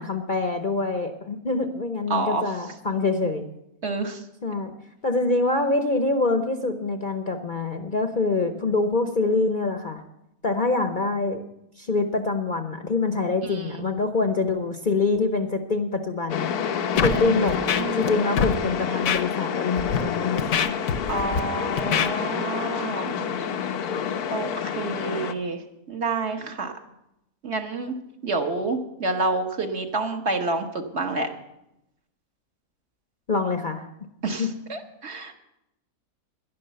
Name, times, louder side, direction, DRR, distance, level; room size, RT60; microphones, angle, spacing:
voice 1, 0.0-3.5 4.4-4.7 5.0-10.0 10.4-11.4 11.8-16.5 17.0-17.6 17.9-20.4 23.1-23.2 33.3-33.9 34.4-34.5, left 3 dB, 40° left, 6 dB, 0.8 m, -25 dB
voice 2, 2.1-2.4 3.8-4.2 13.4-13.8 16.9-17.4 17.8-18.0 21.1-23.1 24.3-26.7 27.4-27.9 28.2-31.3 34.2-35.4, right 3 dB, 50° right, 4 dB, 1.5 m, -28 dB
sound 1, 16.3-25.3, left 7 dB, 85° left, 1.3 m, -28 dB
Scratching (performance technique), 17.0-17.2 17.5-18.1 18.4-18.5 19.1-19.2 19.8-20.0 20.4-21.4 21.8-22.1, left 7 dB, 65° left, 1.2 m, -23 dB
11.5 x 11.0 x 6.7 m, 0.85 s
omnidirectional pair, 1.6 m